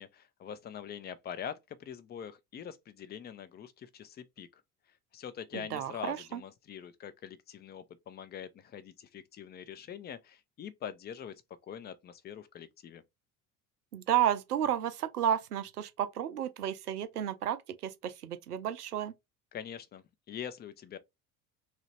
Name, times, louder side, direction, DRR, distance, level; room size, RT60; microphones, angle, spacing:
voice 1, 0.0-4.6 5.1-11.3 11.7-13.0 19.5-21.0, left 8 dB, 25° left, 0.5 m, -44 dB
voice 2, 5.5-6.4 13.9-19.1, right 10 dB, 80° right, 0.5 m, -32 dB
3.0 x 2.3 x 3.1 m
figure-of-eight pair, 60°, 45 cm